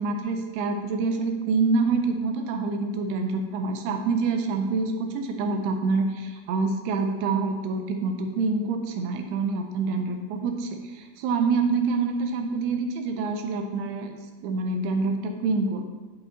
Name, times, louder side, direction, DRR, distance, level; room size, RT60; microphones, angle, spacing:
voice 1, 0.0-14.2 14.4-15.9, right 4 dB, 80° right, 4 dB, 2.5 m, -26 dB
12.0 x 5.3 x 2.9 m, 1.3 s
omnidirectional pair, 4.8 m